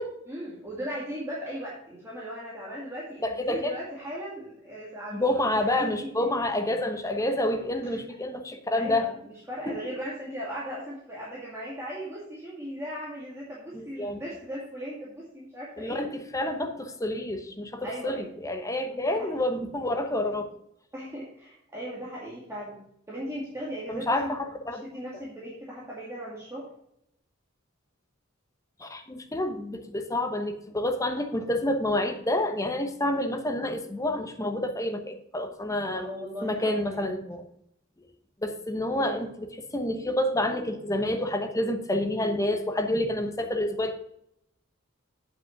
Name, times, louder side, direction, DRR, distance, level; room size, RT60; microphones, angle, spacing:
voice 1, 0.3-6.3 7.9-8.0 8.7-16.0 17.8-18.3 18.8-19.5 20.9-22.8 23.1-24.3 24.7-26.6 35.9-37.1 39.0-39.3, equal, 15° right, -6 dB, 2.1 m, -38 dB
voice 2, 3.2-3.7 5.1-9.1 9.7-9.8 13.7-14.2 15.8-20.5 23.9-24.8 28.8-36.1 36.4-37.4 38.4-39.5 39.7-43.9, left 1 dB, 15° left, 5 dB, 1.0 m, -28 dB
8.3 x 5.8 x 5.8 m, 0.75 s
head